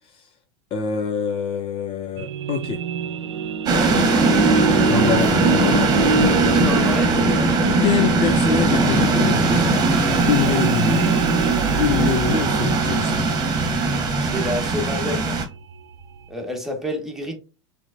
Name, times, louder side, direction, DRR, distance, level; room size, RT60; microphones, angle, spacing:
voice 1, 0.7-2.8 4.8-5.9 7.8-9.7 10.3-11.0 11.7-13.3, left 7 dB, 40° left, 0.7 m, -25 dB
sound 1, 2.2-16.3, right 5 dB, 75° right, 0.8 m, -27 dB
sound 2, 3.7-15.4, right 3 dB, 25° right, 1.4 m, -19 dB
voice 2, 6.4-7.2 14.2-15.4 16.3-17.4, left 1 dB, ahead, 1.6 m, -29 dB
6.0 x 3.4 x 2.5 m
hypercardioid pair, 95°, 15 cm